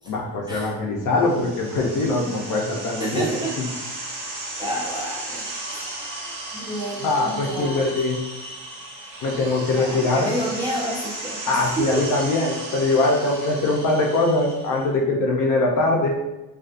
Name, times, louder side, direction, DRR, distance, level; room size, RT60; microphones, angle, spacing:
voice 1, 0.1-3.3 7.0-8.2 9.2-10.3 11.5-16.2, left 2 dB, 45° left, -1 dB, 0.6 m, -22 dB
sound 1, 1.1-14.9, right 2 dB, 80° right, 1.2 m, -35 dB
voice 2, 3.0-3.6 4.6-5.5 5.7-5.8 6.5-7.8 9.7-12.2, right 1 dB, 10° right, -7 dB, 0.4 m, -29 dB
2.4 x 2.3 x 2.5 m, 1.0 s
cardioid pair, 110°, 44 cm